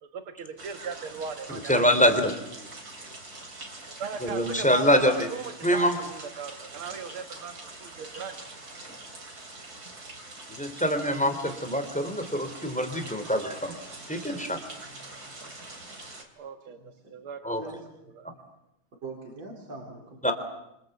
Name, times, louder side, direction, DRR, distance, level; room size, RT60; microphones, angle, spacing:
voice 1, 0.0-1.8 4.0-8.5 14.3-14.6 16.4-17.6 18.1-18.3, right 6 dB, 90° right, 7 dB, 2.3 m, -38 dB
sound 1, 0.6-16.2, right 2 dB, 45° right, 4.0 m, -44 dB
voice 2, 1.5-2.3 4.2-5.3 5.6-6.0 10.5-13.8 14.1-14.7 17.4-17.6 20.2-20.3, equal, 5° left, 7 dB, 3.4 m, -25 dB
voice 3, 16.7-17.3 17.6-17.8 18.3-18.4 19.0-20.2, right 3 dB, 65° right, 0 dB, 5.1 m, -43 dB
27.5 x 26.5 x 8.1 m, 0.85 s
omnidirectional pair, 2.3 m